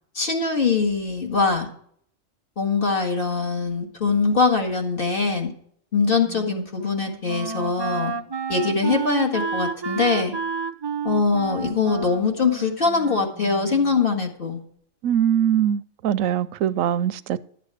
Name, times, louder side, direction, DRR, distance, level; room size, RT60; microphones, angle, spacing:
voice 1, 0.2-1.7 2.6-5.5 5.9-8.1 8.5-10.3 11.0-14.6, left 4 dB, 45° left, 1.9 m, -22 dB
Wind instrument woodwind instrument, 6.2-14.0, right 5 dB, 45° right, 0.3 m, -31 dB
voice 2, 15.0-17.4, right 10 dB, 85° right, 1.0 m, -22 dB
11.5 x 8.2 x 4.8 m
omnidirectional pair, 1.4 m